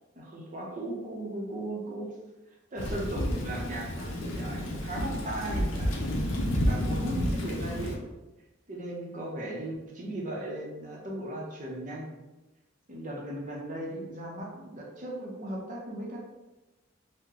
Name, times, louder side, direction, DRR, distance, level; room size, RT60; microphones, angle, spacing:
voice 1, 0.2-2.1 2.7-6.0 6.3-8.0 8.7-12.1 12.9-16.2, right 1 dB, 40° right, -2 dB, 0.6 m, -37 dB
Thunder / Rain, 2.8-8.0, equal, 70° left, 0.6 m, -30 dB
3.7 x 2.1 x 2.9 m, 1.1 s
head